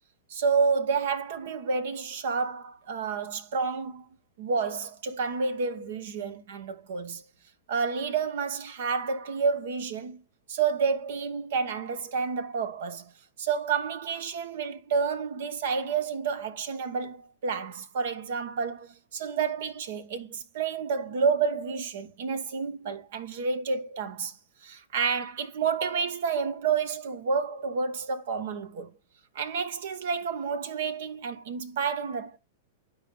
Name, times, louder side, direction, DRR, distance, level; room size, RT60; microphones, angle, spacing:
voice 1, 0.3-4.0 4.4-7.2 7.7-10.2 10.5-13.1 13.4-24.4 24.6-28.9 29.3-32.4, right 5 dB, 65° right, 1.1 m, -29 dB
13.0 x 4.9 x 2.5 m
hypercardioid pair, 110°, 0 cm